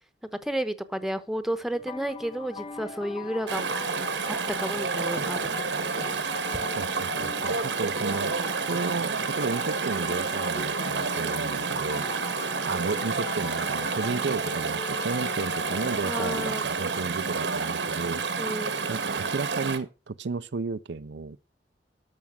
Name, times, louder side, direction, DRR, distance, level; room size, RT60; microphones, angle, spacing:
voice 1, 0.4-3.8 4.3-5.5 5.9-6.4 16.0-16.6 18.4-18.8, right 1 dB, ahead, 1.0 m, -32 dB
sound 1, 1.7-16.6, left 5 dB, 30° left, 0.7 m, -41 dB
Chatter / Stream, 3.5-19.8, right 4 dB, 90° right, 1.6 m, -29 dB
voice 2, 6.8-8.4 8.7-12.1 12.7-18.2 18.9-21.4, right 4 dB, 70° right, 0.5 m, -33 dB
13.0 x 6.1 x 6.2 m
head